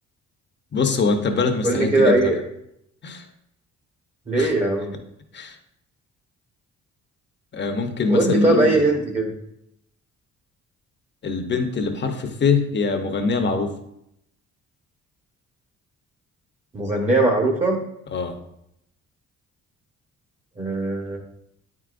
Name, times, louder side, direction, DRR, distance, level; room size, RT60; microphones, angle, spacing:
voice 1, 0.7-2.3 3.0-3.3 4.4-4.5 5.3-5.6 7.5-8.9 11.2-13.8 18.1-18.4, left 4 dB, 35° left, 5 dB, 0.9 m, -23 dB
voice 2, 1.6-2.4 4.3-5.0 8.1-9.3 16.7-17.8 20.6-21.2, right 2 dB, 25° right, 1 dB, 1.1 m, -20 dB
8.7 x 4.8 x 2.5 m, 0.79 s
cardioid pair, 90°, 30 cm